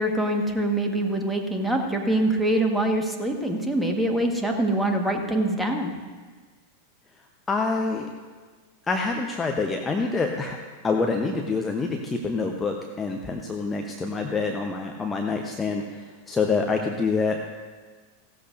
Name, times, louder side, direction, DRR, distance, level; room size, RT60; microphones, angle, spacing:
voice 1, 0.0-5.9, right 1 dB, 5° right, 3 dB, 1.6 m, -24 dB
voice 2, 7.5-8.1 8.9-10.6 10.8-17.4, left 4 dB, 15° left, 2 dB, 0.9 m, -26 dB
16.5 x 13.0 x 2.7 m, 1.4 s
figure-of-eight pair, 90°, 0 cm